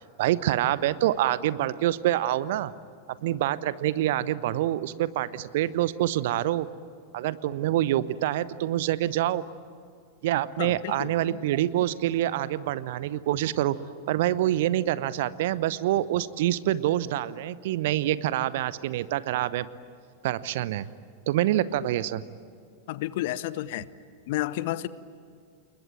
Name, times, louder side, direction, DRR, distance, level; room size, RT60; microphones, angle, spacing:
voice 1, 0.2-2.7 3.2-6.7 7.1-9.4 10.2-13.8 14.1-19.7 20.2-20.9 21.3-22.2, right 13 dB, 55° right, 17 dB, 0.8 m, -26 dB
voice 2, 10.6-11.4 22.9-23.9 24.3-24.9, left 15 dB, 50° left, 18 dB, 0.9 m, -31 dB
28.5 x 22.0 x 9.0 m, 2.3 s
figure-of-eight pair, 90°, 0 cm